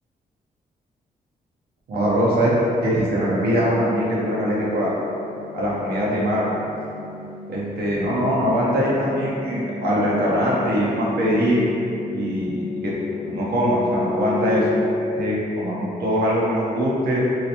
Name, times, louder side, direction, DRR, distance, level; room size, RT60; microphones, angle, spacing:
voice 1, 1.9-2.5 2.8-4.9 5.5-6.5 7.5-11.6 12.1-12.9 13.3-17.2, equal, 80° right, -6 dB, 0.8 m, -22 dB
sound 1, 3.4-16.1, left 3 dB, 65° left, 0.5 m, -32 dB
3.2 x 2.9 x 2.9 m, 2.6 s
cardioid pair, 80°, 16 cm